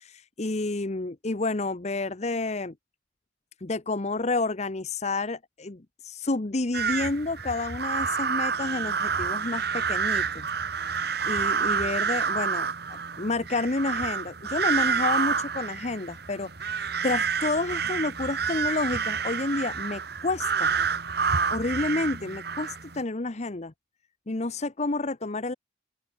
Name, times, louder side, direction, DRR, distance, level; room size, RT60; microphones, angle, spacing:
voice 1, 0.0-2.7 3.6-10.5 10.7-20.7 21.5-23.7 24.3-25.5, left 3 dB, 40° left, 1.0 m, -30 dB
sound 1, 6.7-23.0, right 6 dB, 60° right, 2.2 m, -28 dB
open air
head